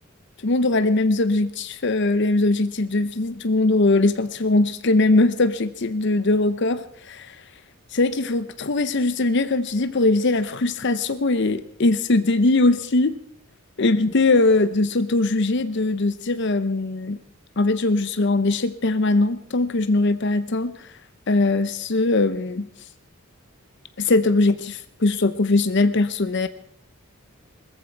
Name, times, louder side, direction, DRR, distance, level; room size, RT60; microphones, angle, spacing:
voice 1, 0.4-7.4 7.9-13.2 13.8-17.2 17.6-20.9 21.3-22.7 24.0-26.5, left 2 dB, 55° left, 12 dB, 0.7 m, -21 dB
20.5 x 14.5 x 4.6 m, 0.65 s
head